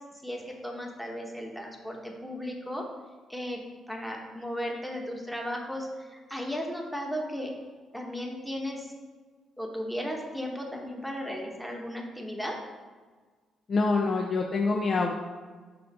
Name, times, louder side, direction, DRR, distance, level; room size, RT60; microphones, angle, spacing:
voice 1, 0.2-2.8 3.3-3.6 3.9-7.5 7.9-8.9 9.6-12.6, equal, ahead, 0 dB, 1.2 m, -35 dB
voice 2, 13.7-15.2, left 3 dB, 45° left, 0 dB, 0.6 m, -26 dB
5.5 x 3.9 x 5.6 m, 1.4 s
cardioid pair, 90°, 0 cm